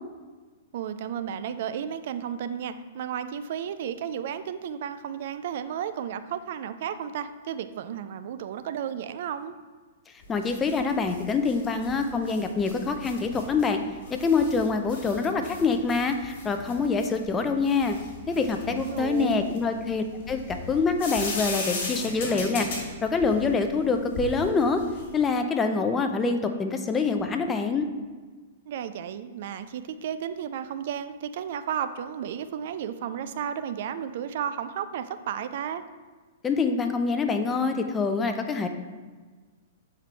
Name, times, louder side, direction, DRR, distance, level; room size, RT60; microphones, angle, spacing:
voice 1, 0.7-9.6 18.7-19.5 28.7-35.8, right 9 dB, 55° right, 11 dB, 0.3 m, -33 dB
sound 1, 10.2-25.2, left 2 dB, 50° left, 1.7 m, -38 dB
voice 2, 10.3-13.8 14.1-18.0 18.3-22.7 23.0-24.8 25.1-27.9 36.4-38.7, left 4 dB, 15° left, 6 dB, 0.5 m, -25 dB
6.6 x 4.6 x 3.3 m, 1.4 s
figure-of-eight pair, 110°, 0 cm